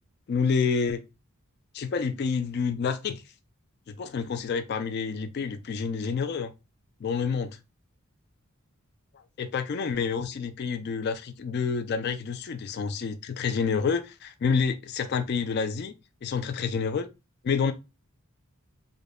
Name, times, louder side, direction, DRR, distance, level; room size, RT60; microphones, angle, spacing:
voice 1, 0.3-1.0 1.7-3.2 3.9-6.5 7.0-7.6 9.4-15.9 16.2-17.1 17.4-17.7, left 5 dB, 45° left, 0.3 m, -28 dB
5.1 x 2.1 x 2.3 m
head